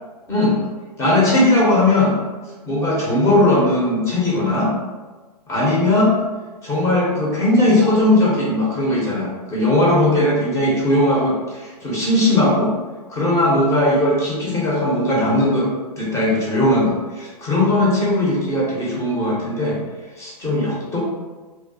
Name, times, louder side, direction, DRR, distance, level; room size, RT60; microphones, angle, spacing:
voice 1, 1.0-2.2 2.7-4.7 5.5-6.1 6.6-12.7 13.1-15.7 16.0-19.8 20.2-21.0, left 1 dB, 15° left, -5 dB, 0.6 m, -18 dB
2.3 x 2.2 x 2.5 m, 1.2 s
hypercardioid pair, 130°, 21 cm